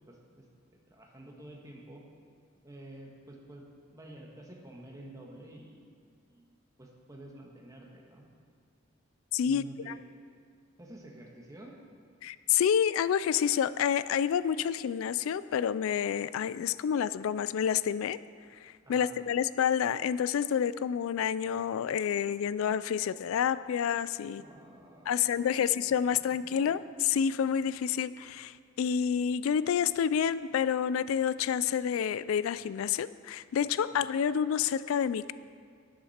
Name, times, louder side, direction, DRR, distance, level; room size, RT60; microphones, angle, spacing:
voice 1, 0.1-0.4 0.9-2.0 2.6-5.8 6.3-8.3 9.4-10.0 10.8-11.8 18.8-19.2 24.3-25.7 26.1-26.7 33.9-34.1, right 1 dB, 15° right, -1 dB, 1.5 m, -50 dB
voice 2, 9.3-10.0 12.2-18.2 18.6-24.4 25.1-35.3, left 8 dB, 75° left, 16 dB, 0.3 m, -29 dB
12.0 x 11.0 x 4.3 m, 2.2 s
head